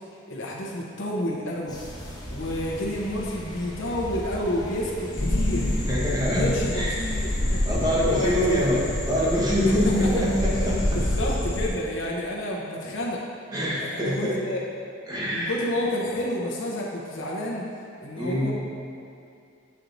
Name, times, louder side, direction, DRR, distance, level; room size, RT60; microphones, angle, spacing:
voice 1, 0.3-1.8 2.3-5.7 6.2-7.6 8.0-8.7 9.7-10.3 10.9-13.2 13.7-14.7 15.3-17.7 18.0-18.5, left 1 dB, 85° left, -3 dB, 0.9 m, -30 dB
sound 1, 1.7-11.4, equal, 20° left, 0.7 m, -38 dB
sound 2, 5.1-11.7, left 1 dB, 45° left, 0.9 m, -27 dB
voice 2, 5.9-6.9 7.7-11.0 13.5-14.4 15.1-15.5 18.2-18.5, equal, 20° right, -5 dB, 1.0 m, -24 dB
8.3 x 4.4 x 2.6 m, 2.5 s
head